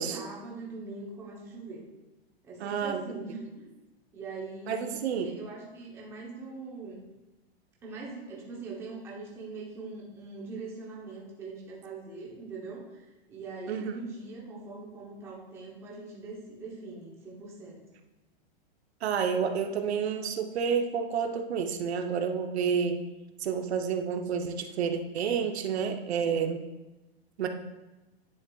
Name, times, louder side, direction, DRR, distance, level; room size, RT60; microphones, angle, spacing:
voice 1, 0.0-1.9 2.4-3.7 4.1-7.0 7.8-17.8, right 3 dB, 10° right, -4 dB, 0.7 m, -42 dB
voice 2, 2.6-3.0 4.7-5.3 13.7-13.9 19.0-23.0 23.4-26.6 27.4-27.5, right 6 dB, 80° right, 5 dB, 0.8 m, -29 dB
9.7 x 7.2 x 2.3 m, 1.1 s
supercardioid pair, 170°, 32 cm